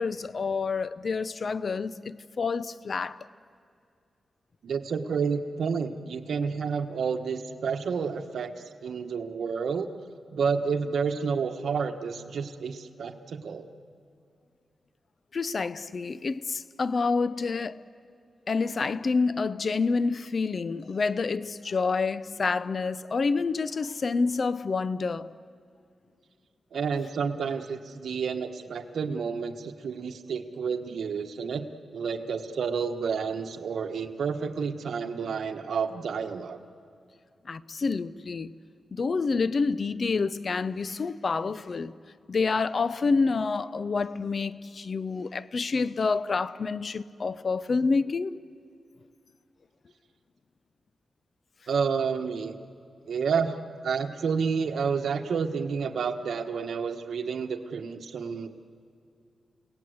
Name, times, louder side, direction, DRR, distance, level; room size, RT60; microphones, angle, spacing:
voice 1, 0.0-3.3 15.3-17.8 18.5-25.3 37.5-38.5 38.9-41.9 42.3-48.4, left 4 dB, 45° left, 0.6 m, -28 dB
voice 2, 4.6-8.5 8.8-9.9 10.3-13.6 26.7-31.7 31.9-36.6 51.7-52.5 53.1-53.5 53.8-58.5, right 6 dB, 75° right, 1.4 m, -30 dB
30.0 x 18.0 x 7.9 m
wide cardioid pair, 110°, 0 cm